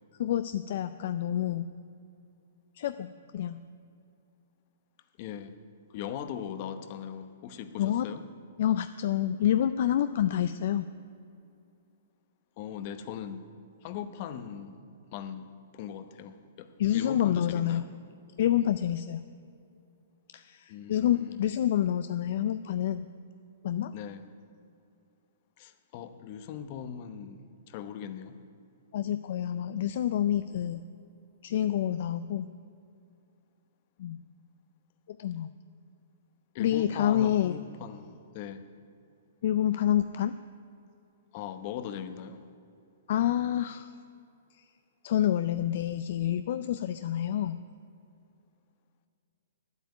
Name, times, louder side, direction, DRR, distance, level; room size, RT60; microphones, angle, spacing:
voice 1, 0.2-1.7 2.7-3.6 7.8-8.1 8.6-10.9 16.8-17.8 18.4-19.2 20.3-23.0 23.6-23.9 28.9-30.9 31.4-32.5 34.0-34.2 35.1-35.5 36.6-37.6 39.4-40.4 43.1-43.9 44.5-44.6 45.0-47.6, left 11 dB, 60° left, 11 dB, 0.4 m, -28 dB
voice 2, 5.2-5.6 5.9-8.2 12.6-13.4 13.8-14.8 15.1-17.9 20.7-21.5 23.9-24.2 25.6-28.4 36.5-38.7 41.3-42.5, left 8 dB, 45° left, 11 dB, 0.9 m, -40 dB
9.4 x 8.2 x 9.5 m, 2.6 s
hypercardioid pair, 140°, 0 cm